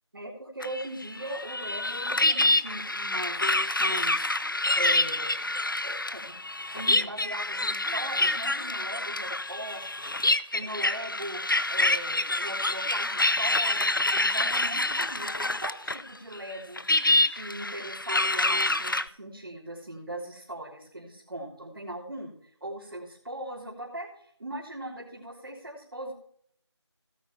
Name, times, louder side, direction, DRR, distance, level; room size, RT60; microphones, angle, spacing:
voice 1, 0.1-5.4 5.8-6.4 6.7-10.2 10.5-11.4 11.7-16.8 17.2-26.1, right 1 dB, 50° right, -5 dB, 3.3 m, -40 dB
sound 1, 0.6-16.1 16.3-19.0, left 2 dB, 45° left, 0.5 m, -27 dB
17.5 x 8.9 x 3.1 m, 0.63 s
figure-of-eight pair, 175°, 15 cm